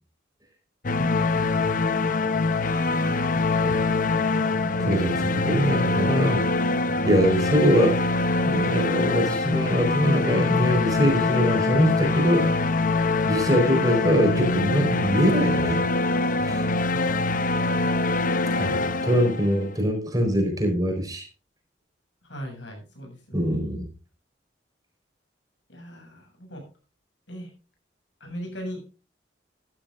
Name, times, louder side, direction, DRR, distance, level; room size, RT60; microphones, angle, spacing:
sound 1, 0.8-19.8, left 3 dB, 45° left, 0.7 m, -24 dB
voice 1, 1.0-2.0 3.3-3.4 8.3-8.6 13.4-13.6 16.9-18.0 22.2-23.8 25.7-26.7 27.3-27.5 28.2-28.9, equal, 75° left, 2 dB, 7.2 m, -39 dB
voice 2, 3.6-4.4 4.8-6.5 7.0-8.0 8.4-12.5 13.3-15.8 16.4-16.7 18.6-21.2 23.3-23.9, equal, 20° right, 3 dB, 4.4 m, -23 dB
14.5 x 13.5 x 2.6 m, 0.33 s
head